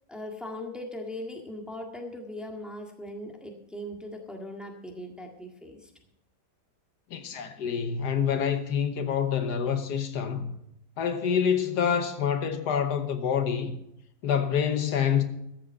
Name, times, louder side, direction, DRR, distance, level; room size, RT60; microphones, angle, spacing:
voice 1, 0.1-5.9, left 1 dB, ahead, 1.6 m, -39 dB
voice 2, 7.1-10.5 11.0-13.8 14.2-15.2, left 7 dB, 80° left, 1.5 m, -27 dB
13.5 x 7.5 x 6.5 m
omnidirectional pair, 1.7 m